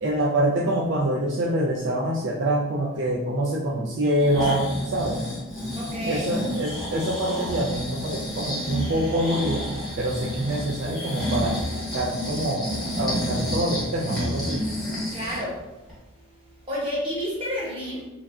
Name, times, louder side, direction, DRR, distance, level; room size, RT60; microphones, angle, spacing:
voice 1, 0.0-5.3 6.0-9.7 10.0-11.6 11.9-14.6, right 1 dB, 60° right, -2 dB, 0.3 m, -25 dB
Breathing, 4.0-15.5 15.9-16.0, equal, ahead, 0.8 m, -30 dB
voice 2, 5.8-6.3 15.1-15.6 16.7-18.0, equal, 25° right, -6 dB, 1.0 m, -30 dB
3.2 x 2.4 x 2.3 m, 1.0 s
head